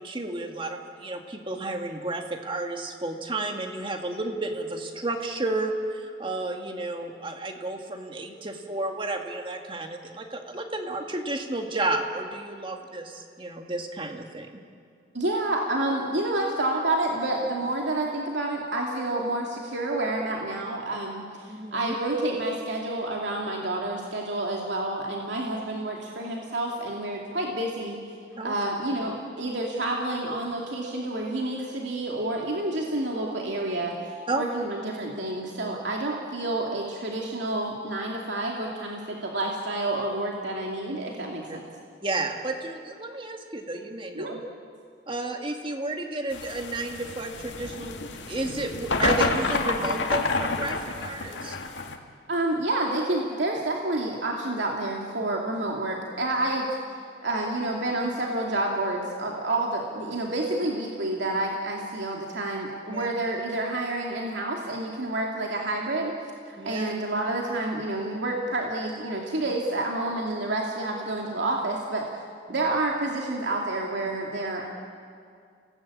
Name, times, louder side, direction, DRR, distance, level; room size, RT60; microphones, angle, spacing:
voice 1, 0.0-14.6 17.6-17.7 21.5-22.0 28.4-28.5 34.3-34.4 41.5-41.6 42.0-44.4 45.1-51.6 62.9-63.1 66.6-66.9, right 2 dB, 30° right, 4 dB, 2.0 m, -32 dB
voice 2, 15.1-28.0 28.4-41.6 44.1-44.4 52.3-56.8 57.2-66.1 66.5-72.2 72.5-74.7, right 2 dB, 75° right, -1 dB, 2.5 m, -29 dB
sound 1, 46.3-52.0, left 3 dB, 85° left, 2.0 m, -29 dB
29.5 x 18.5 x 8.6 m, 2.2 s
head